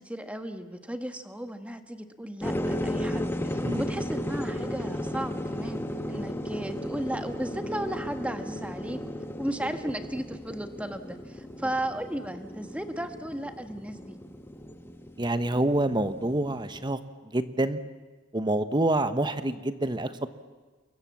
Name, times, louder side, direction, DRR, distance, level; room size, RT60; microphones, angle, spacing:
voice 1, 0.0-5.8 6.1-9.0 9.4-14.2, right 1 dB, 5° right, 7 dB, 1.5 m, -35 dB
sound 1, 2.4-16.9, left 1 dB, 10° left, 1.2 m, -35 dB
voice 2, 15.2-17.0 17.3-17.8 18.3-20.3, right 1 dB, 25° right, 11 dB, 1.1 m, -27 dB
28.5 x 23.0 x 7.4 m, 1.3 s
head